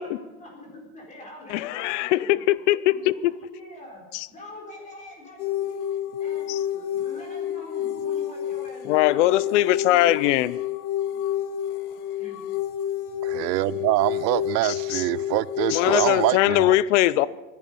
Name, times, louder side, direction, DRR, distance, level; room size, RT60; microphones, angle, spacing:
voice 1, 0.0-2.4 2.9-4.0 4.3-5.8 6.2-10.3 11.1-11.3 12.1-12.4, left 2 dB, 15° left, -1 dB, 4.5 m, -43 dB
voice 2, 1.5-3.3 4.1-4.3 6.5-6.6 8.8-10.6 14.6-15.0 15.7-17.3, left 15 dB, 50° left, 20 dB, 0.6 m, -21 dB
sound 1, 5.4-16.3, left 10 dB, 65° left, 1.5 m, -29 dB
voice 3, 13.2-16.7, right 17 dB, 90° right, 21 dB, 0.7 m, -24 dB
24.5 x 10.5 x 5.5 m, 1.1 s
supercardioid pair, 175°, 48 cm